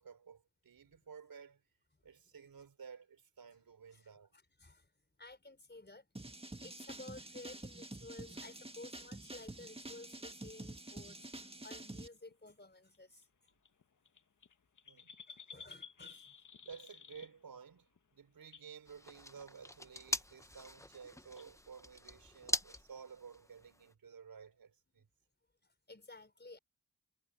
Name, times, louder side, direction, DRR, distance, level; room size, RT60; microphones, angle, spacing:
voice 1, 0.0-1.6 2.0-4.3 8.3-8.4 14.8-15.1 16.6-25.1, right 6 dB, 80° right, 5.2 m, -54 dB
voice 2, 3.9-4.9 5.2-13.3 15.3-16.3 25.0-25.1 25.6-26.6, left 2 dB, 30° left, 4.9 m, -54 dB
sound 1, 6.2-12.1, right 2 dB, 15° right, 1.9 m, -48 dB
sound 2, 8.0-9.7 10.6-10.7 11.0-11.2 12.3-12.6 12.9-13.0 13.2-13.3 13.5-17.6 18.0-18.1 18.4-18.7 19.3-19.6 20.1-20.2 20.4-20.5 20.8-20.9 21.4-21.5, left 6 dB, 60° left, 1.3 m, -55 dB
sound 3, 18.9-23.9, left 1 dB, 10° left, 1.1 m, -42 dB
cardioid pair, 55°, 35 cm